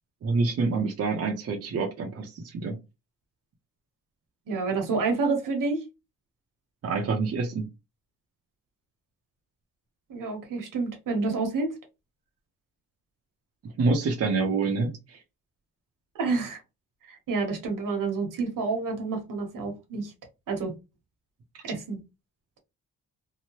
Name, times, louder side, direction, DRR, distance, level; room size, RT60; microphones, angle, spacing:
voice 1, 0.2-2.8 6.8-7.7 13.8-15.2, right 4 dB, 50° right, 0.6 m, -27 dB
voice 2, 4.5-5.8 10.1-11.7 16.2-16.6 17.1-20.1 20.5-20.7 21.7-22.0, right 4 dB, 80° right, 1.1 m, -28 dB
2.8 x 2.1 x 3.0 m
cardioid pair, 120°, 32 cm